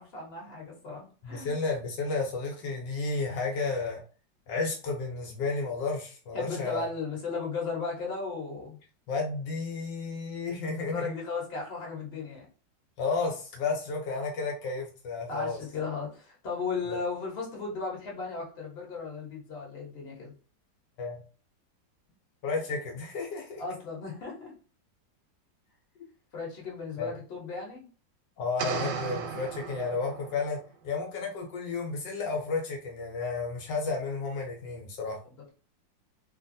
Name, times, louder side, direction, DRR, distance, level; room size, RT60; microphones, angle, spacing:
voice 1, 0.0-1.5 6.3-8.8 10.9-12.5 15.3-20.3 23.6-24.5 26.3-27.9 35.2-35.5, left 4 dB, 40° left, -3 dB, 1.2 m, -36 dB
voice 2, 1.2-4.0 4.5-6.9 9.1-11.1 13.0-15.6 21.0-21.2 22.4-23.6 27.0-27.1 28.4-30.6 30.8-35.2, left 4 dB, 75° left, 1 dB, 1.3 m, -32 dB
sound 1, 28.6-30.5, right 6 dB, 85° right, 1.4 m, -35 dB
3.3 x 2.3 x 2.6 m, 0.37 s
omnidirectional pair, 1.9 m